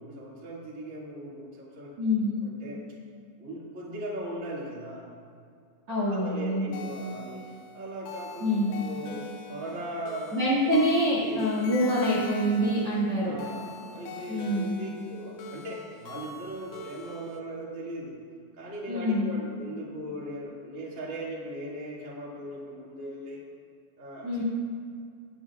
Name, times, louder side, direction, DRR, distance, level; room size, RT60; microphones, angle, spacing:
voice 1, 0.0-1.9 2.4-2.8 3.4-5.0 6.0-9.2 9.5-10.4 10.6-10.7 11.2-11.4 11.9-12.2 13.2-18.2 18.6-23.4 24.0-24.4, right 1 dB, 60° right, -6 dB, 0.7 m, -39 dB
voice 2, 2.0-2.3 5.9-6.7 8.4-8.8 10.3-13.3 14.3-14.8 18.9-19.3 24.2-24.4, equal, 45° right, -7 dB, 1.9 m, -25 dB
sound 1, 6.7-17.4, left 3 dB, 90° left, 3.6 m, -44 dB
22.0 x 8.5 x 2.4 m, 2.3 s
omnidirectional pair, 5.8 m